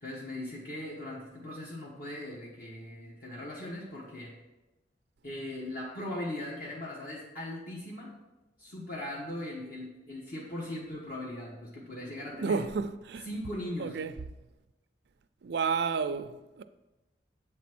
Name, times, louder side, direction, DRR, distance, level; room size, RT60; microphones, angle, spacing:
voice 1, 0.0-4.3 5.2-8.1 8.6-12.7 13.2-14.0, left 1 dB, 55° left, 1.3 m, -39 dB
voice 2, 12.4-13.3 13.8-14.2 15.4-16.6, right 5 dB, 65° right, 0.4 m, -31 dB
7.8 x 4.1 x 6.0 m
head